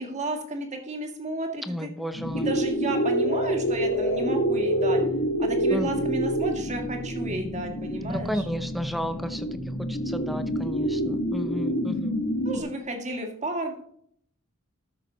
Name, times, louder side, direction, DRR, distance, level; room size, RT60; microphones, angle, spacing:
voice 1, 0.0-1.9 2.4-5.0 5.4-8.4 12.5-13.8, right 1 dB, 35° right, 4 dB, 1.9 m, -32 dB
voice 2, 1.6-2.5 5.7-5.9 8.1-9.5 9.8-12.2, equal, ahead, 10 dB, 0.6 m, -33 dB
sound 1, 2.1-12.6, equal, 75° left, 2.6 m, -27 dB
13.5 x 6.4 x 4.0 m, 0.66 s
head